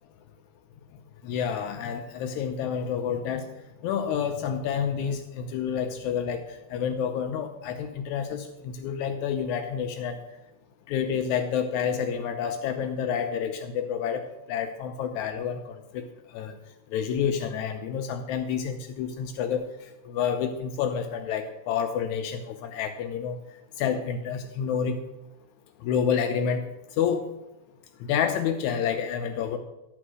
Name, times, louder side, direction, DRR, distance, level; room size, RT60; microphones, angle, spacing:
voice 1, 1.2-3.5 3.8-6.4 6.7-10.2 10.9-16.0 16.3-16.5 16.9-19.7 20.1-23.4 23.8-25.0 25.8-26.6 27.0-27.2 28.1-29.6, left 7 dB, 80° left, 6 dB, 1.8 m, -29 dB
11.0 x 4.4 x 6.2 m, 0.97 s
omnidirectional pair, 3.7 m